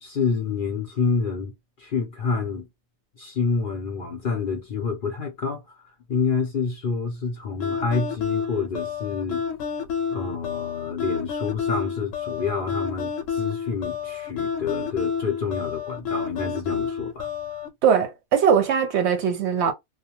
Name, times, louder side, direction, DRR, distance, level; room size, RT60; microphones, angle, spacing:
voice 1, 0.0-2.7 3.2-9.5 10.1-17.3, left 5 dB, 55° left, 0.6 m, -28 dB
sound 1, 7.6-17.7, left 6 dB, 75° left, 0.9 m, -29 dB
voice 2, 17.8-19.7, right 7 dB, 65° right, 0.8 m, -20 dB
2.3 x 2.1 x 2.8 m
omnidirectional pair, 1.4 m